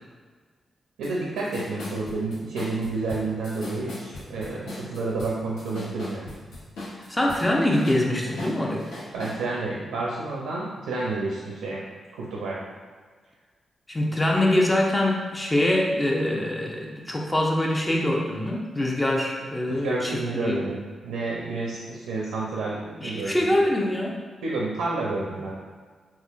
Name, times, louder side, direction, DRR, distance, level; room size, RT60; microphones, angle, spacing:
sound 1, 1.0-1.1 1.4-7.4 7.7-9.4, left 2 dB, 85° left, 0.8 m, -39 dB
voice 1, 1.0-6.3 9.1-11.8 12.1-12.6 19.7-23.5 24.4-25.5, right 3 dB, 90° right, -4 dB, 0.4 m, -30 dB
voice 2, 7.1-8.9 13.9-20.6 23.0-24.2, left 1 dB, 20° left, -1 dB, 0.6 m, -24 dB
3.5 x 2.3 x 2.4 m, 1.5 s
supercardioid pair, 45°, 0 cm